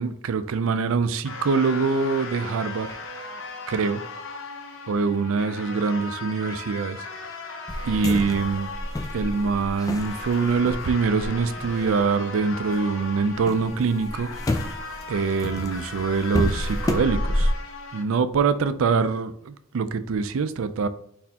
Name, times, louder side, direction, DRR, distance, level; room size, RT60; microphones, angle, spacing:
voice 1, 0.0-3.0 3.7-4.0 4.9-7.0 7.8-8.7 9.1-14.3 15.1-17.5 17.9-20.9, right 5 dB, 65° right, 0.4 m, -24 dB
sound 1, 1.2-18.0, left 3 dB, 60° left, 0.6 m, -37 dB
sound 2, 7.7-12.8 13.1-17.5, left 1 dB, 15° left, 0.3 m, -30 dB
4.2 x 4.1 x 2.8 m
head